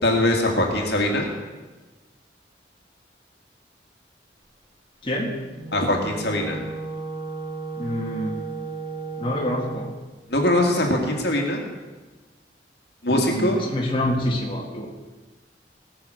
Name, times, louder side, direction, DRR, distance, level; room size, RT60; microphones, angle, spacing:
voice 1, 0.0-1.3 5.7-6.6 10.3-11.6 13.0-13.6, left 1 dB, 60° left, 1 dB, 2.0 m, -22 dB
voice 2, 5.0-5.4 7.8-8.4 9.2-9.9 13.1-14.9, left 1 dB, 30° left, -2 dB, 1.8 m, -27 dB
Wind instrument woodwind instrument, 5.5-10.0, right 3 dB, 25° right, 1.8 m, -34 dB
18.5 x 6.4 x 6.3 m, 1.2 s
head